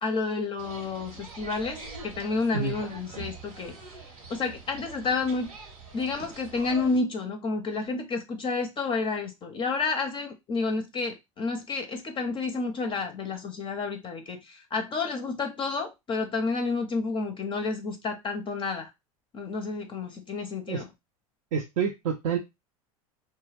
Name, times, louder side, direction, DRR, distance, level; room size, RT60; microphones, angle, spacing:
voice 1, 0.0-4.0 4.3-5.5 5.9-18.9 19.3-20.9, left 4 dB, 30° left, 0.5 m, -30 dB
sound 1, 0.6-7.0, right 4 dB, 85° right, 1.0 m, -44 dB
voice 2, 21.5-22.4, right 6 dB, 70° right, 0.5 m, -28 dB
2.3 x 2.1 x 3.2 m
hypercardioid pair, 95°, 18 cm